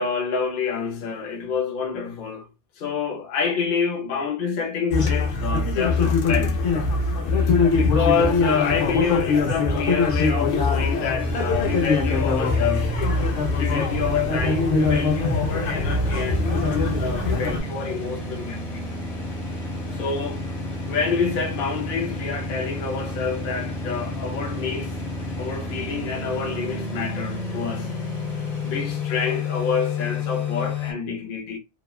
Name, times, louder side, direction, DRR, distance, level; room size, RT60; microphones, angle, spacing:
voice 1, 0.0-2.5 2.8-6.6 7.7-13.0 13.6-18.9 19.9-20.5 20.9-25.0 25.4-27.9 28.6-31.6, left 6 dB, 55° left, 0.7 m, -27 dB
sound 1, 4.9-17.6, left 4 dB, 75° left, 1.0 m, -22 dB
sound 2, 11.2-30.9, left 2 dB, 35° left, 1.1 m, -30 dB
2.8 x 2.1 x 2.3 m
omnidirectional pair, 1.2 m